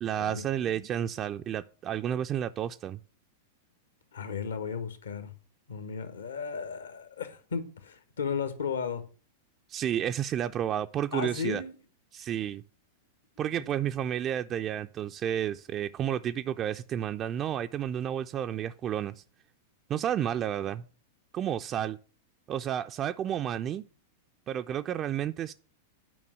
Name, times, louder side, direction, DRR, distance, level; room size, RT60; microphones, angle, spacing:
voice 1, 0.0-3.0 9.7-11.6 12.1-12.6 13.4-19.2 19.9-20.8 21.3-22.0 22.5-23.8 24.5-25.5, right 10 dB, 30° right, 0.3 m, -31 dB
voice 2, 4.1-5.3 5.7-9.0 11.1-11.7, left 6 dB, 70° left, 1.2 m, -34 dB
9.3 x 5.3 x 6.3 m
figure-of-eight pair, 95°, 0 cm